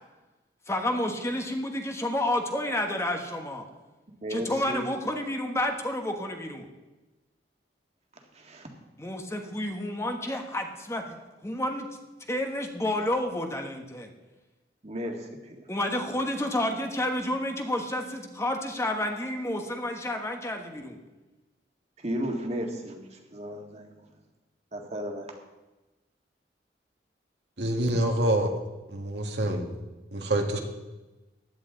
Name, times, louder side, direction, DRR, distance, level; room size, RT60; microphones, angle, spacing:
voice 1, 0.7-3.7 4.3-6.7 9.0-11.2 11.4-11.9 12.3-14.1 15.7-21.0, left 1 dB, 15° left, 4 dB, 1.2 m, -30 dB
voice 2, 4.2-4.9 8.3-8.7 14.8-15.7 22.0-24.0 24.7-25.3, equal, 40° right, 3 dB, 1.9 m, -34 dB
voice 3, 27.6-28.5 28.9-29.7 30.1-30.6, right 1 dB, 75° right, 2 dB, 1.8 m, -26 dB
16.0 x 11.0 x 3.9 m, 1.1 s
head